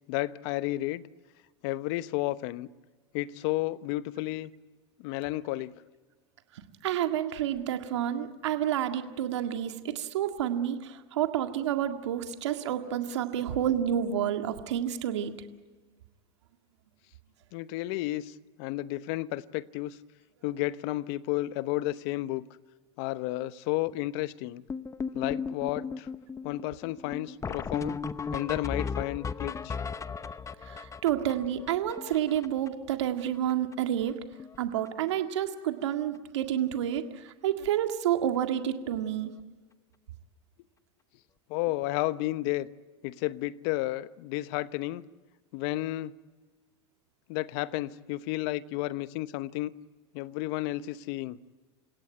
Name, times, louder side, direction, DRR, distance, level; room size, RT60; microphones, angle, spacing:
voice 1, 0.1-1.1 1.6-2.7 3.1-4.5 5.0-5.7 17.5-20.0 20.4-22.5 23.0-24.6 25.1-26.1 26.4-28.0 28.3-29.8 41.5-42.7 43.0-45.0 45.5-46.1 47.3-49.7 50.1-51.4, left 17 dB, 65° left, 1.0 m, -32 dB
voice 2, 6.5-15.3 30.6-34.2 34.6-39.3, right 10 dB, 80° right, 1.9 m, -29 dB
sound 1, 24.7-32.9 33.2-33.3 33.5-33.7 34.0-34.6 34.9-35.1 35.9-36.0 36.4-36.5 36.8-37.0 39.2-39.3 41.7-41.8, left 5 dB, 20° left, 0.9 m, -36 dB
29.0 x 17.0 x 9.3 m
hypercardioid pair, 90°, 15 cm